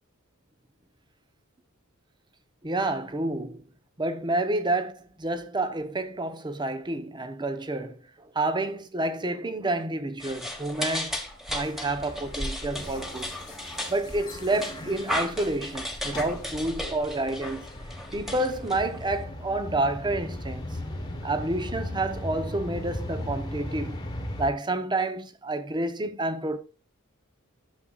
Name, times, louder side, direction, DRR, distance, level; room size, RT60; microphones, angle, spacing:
voice 1, 2.6-3.6 4.0-4.9 5.2-8.0 8.3-11.2 11.5-13.3 13.9-17.6 18.1-20.7 21.2-24.0 24.4-26.6, right 2 dB, 20° right, 0.9 m, -29 dB
sound 1, 10.2-19.2, left 1 dB, ahead, 1.4 m, -35 dB
sound 2, 11.6-24.5, left 1 dB, 20° left, 1.4 m, -38 dB
11.5 x 7.0 x 2.4 m
head